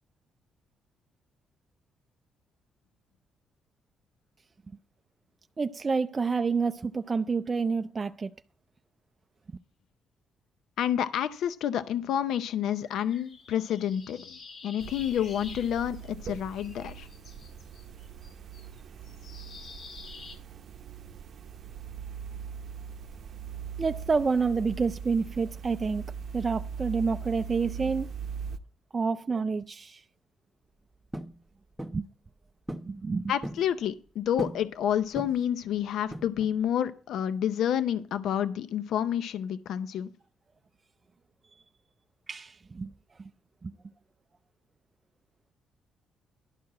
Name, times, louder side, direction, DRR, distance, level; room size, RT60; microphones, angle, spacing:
voice 1, 5.6-8.3 23.8-26.1 26.3-28.1 28.9-30.0 31.8-32.1 32.7-33.3 42.3-42.9 43.2-43.3 43.6-43.7, right 4 dB, 30° right, 0.4 m, -28 dB
voice 2, 10.8-17.1 33.3-40.1, left 10 dB, 75° left, 0.6 m, -29 dB
sound 1, 12.9-16.3 16.5-20.4, left 4 dB, 60° left, 2.1 m, -49 dB
sound 2, 14.8-28.6, right 7 dB, 60° right, 0.7 m, -41 dB
sound 3, 31.1-31.4 31.8-32.1 32.7-32.9 33.2-33.7 34.4-34.7 35.1-35.5 36.1-36.6, right 1 dB, 5° right, 0.8 m, -38 dB
11.5 x 4.7 x 7.3 m
cardioid pair, 90°, 0 cm